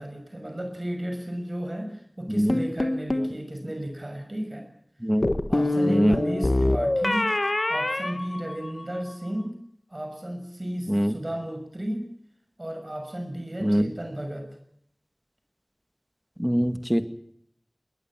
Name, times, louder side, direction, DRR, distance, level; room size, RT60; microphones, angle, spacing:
voice 1, 0.0-4.7 5.5-7.3 7.7-9.5 9.9-12.0 12.6-14.5, right 1 dB, 45° right, 5 dB, 6.2 m, -33 dB
sound 1, 2.5-3.3 5.2-9.0, left 1 dB, 60° left, 1.6 m, -25 dB
voice 2, 5.9-6.2 10.9-11.1 13.6-13.9 16.4-17.1, equal, 10° right, 9 dB, 2.2 m, -23 dB
21.5 x 20.0 x 7.6 m, 0.69 s
wide cardioid pair, 45°, 0 cm